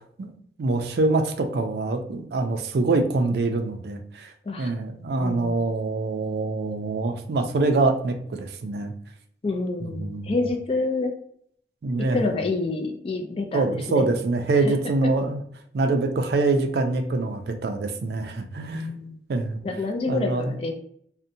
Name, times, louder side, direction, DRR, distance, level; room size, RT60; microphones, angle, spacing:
voice 1, 0.6-4.3 4.6-8.9 9.8-10.3 11.8-12.3 13.5-15.4 15.7-18.9 19.3-19.6 20.1-20.6, right 3 dB, 65° right, 5 dB, 0.4 m, -25 dB
voice 2, 5.2-5.6 9.4-11.1 12.0-14.1 14.6-14.7 18.7-19.2 19.6-20.7, left 3 dB, 30° left, 4 dB, 0.3 m, -28 dB
2.6 x 2.1 x 2.6 m, 0.65 s
head